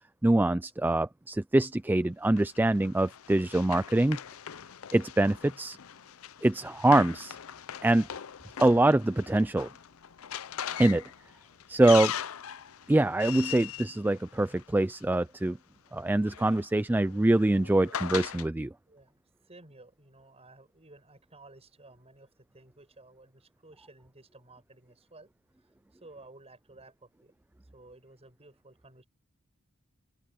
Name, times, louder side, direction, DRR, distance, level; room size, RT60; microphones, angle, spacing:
voice 1, 0.2-4.2 4.9-5.8 6.4-7.4 7.8-8.1 8.6-9.7 10.8-11.0 11.7-12.1 12.9-15.6 15.9-18.7, right 1 dB, 10° right, 0.3 m, -24 dB
Run, 2.4-15.0 16.0-18.5, left 9 dB, 70° left, 0.6 m, -40 dB
voice 2, 18.8-25.3 25.9-27.3 27.7-29.0, right 2 dB, 30° right, 7.6 m, -54 dB
open air
head